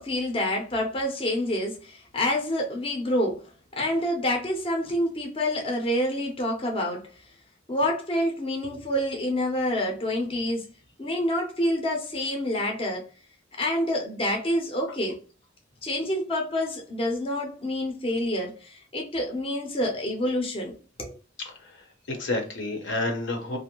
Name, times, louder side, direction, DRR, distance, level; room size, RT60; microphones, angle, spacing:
voice 1, 0.0-3.4 3.7-7.1 7.7-10.7 11.0-13.1 13.6-15.2 15.8-21.2, left 1 dB, 30° left, 0.5 m, -27 dB
voice 2, 21.4-23.6, left 2 dB, 65° left, 0.7 m, -30 dB
2.5 x 2.0 x 2.8 m
head